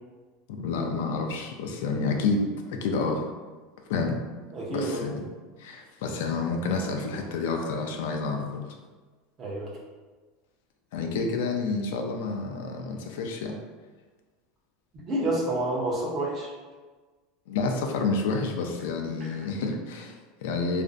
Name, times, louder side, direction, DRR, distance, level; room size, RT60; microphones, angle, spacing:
voice 1, 0.5-3.3 3.9-4.2 4.7-5.3 5.6-8.7 10.9-13.6 17.5-20.8, left 4 dB, 75° left, 3 dB, 0.3 m, -29 dB
voice 2, 4.5-5.1 9.4-9.7 14.9-16.5, right 1 dB, 25° right, -3 dB, 0.5 m, -29 dB
2.4 x 2.0 x 2.5 m, 1.3 s
supercardioid pair, 170°, 0 cm